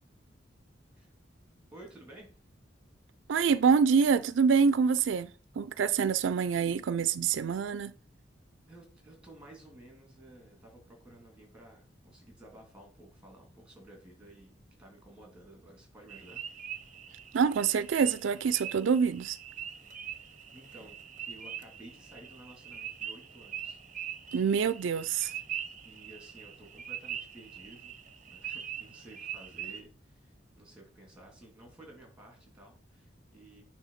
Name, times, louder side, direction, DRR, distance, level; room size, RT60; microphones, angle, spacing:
voice 1, 1.7-2.3 6.0-6.4 8.7-16.4 20.0-21.0 21.2-23.8 25.8-27.9 28.2-33.6, right 1 dB, 5° right, 2.9 m, -54 dB
voice 2, 3.3-5.3 5.6-7.9 17.3-19.4 24.3-25.3, right 6 dB, 80° right, 0.4 m, -26 dB
sound 1, 16.1-29.8, right 9 dB, 40° right, 0.7 m, -43 dB
9.1 x 3.4 x 5.7 m
head